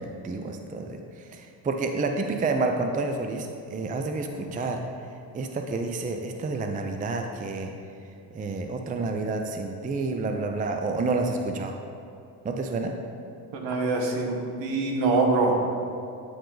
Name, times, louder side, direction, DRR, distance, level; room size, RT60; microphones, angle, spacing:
voice 1, 0.0-4.8 5.3-7.7 8.3-11.7 12.4-12.9, right 3 dB, 15° right, 4 dB, 0.5 m, -29 dB
voice 2, 13.5-15.6, right 3 dB, 60° right, 1 dB, 1.4 m, -24 dB
9.2 x 4.5 x 3.9 m, 2.6 s
supercardioid pair, 70°, 49 cm